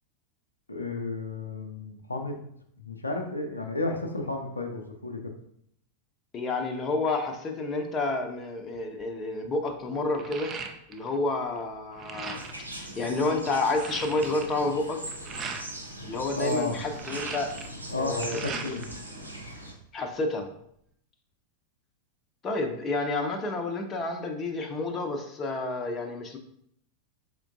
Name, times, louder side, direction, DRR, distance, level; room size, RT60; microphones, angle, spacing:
voice 1, 0.7-2.5 2.8-5.2 16.4-16.7 17.9-18.9, left 2 dB, 80° left, 3 dB, 0.4 m, -32 dB
voice 2, 6.3-10.5 10.9-12.4 12.7-15.0 16.0-17.5 17.9-18.6 19.9-20.5 22.4-26.4, left 2 dB, 25° left, 4 dB, 0.5 m, -30 dB
sound 1, 8.7-9.0 9.4-11.2 11.5-12.7 13.2-13.3 13.4-15.7 16.7-19.0 19.3-20.2, right 5 dB, 25° right, 0.4 m, -40 dB
sound 2, 12.3-19.7, right 1 dB, 85° right, 0.5 m, -40 dB
4.4 x 3.5 x 2.4 m, 0.71 s
figure-of-eight pair, 90°, 0 cm